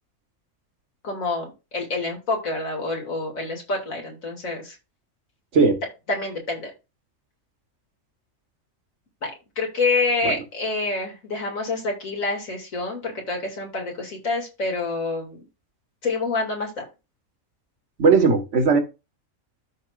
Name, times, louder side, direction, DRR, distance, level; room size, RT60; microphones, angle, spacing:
voice 1, 1.0-4.8 6.1-6.7 9.2-15.4 16.0-16.8, left 3 dB, 70° left, 0 dB, 2.7 m, -27 dB
voice 2, 18.0-18.8, right 4 dB, 60° right, 5 dB, 1.8 m, -17 dB
13.0 x 4.6 x 2.4 m, 0.27 s
omnidirectional pair, 1.4 m